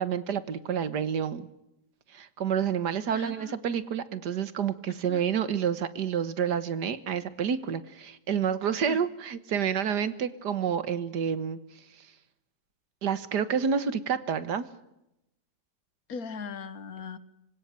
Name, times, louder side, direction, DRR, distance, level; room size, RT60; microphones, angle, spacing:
voice 1, 0.0-1.5 2.1-11.6 13.0-14.7, right 7 dB, 70° right, 14 dB, 1.9 m, -29 dB
voice 2, 3.1-3.5 5.0-5.2 8.9-9.0 16.1-17.2, left 5 dB, 60° left, 15 dB, 1.5 m, -38 dB
26.0 x 17.0 x 9.0 m, 0.86 s
omnidirectional pair, 1.8 m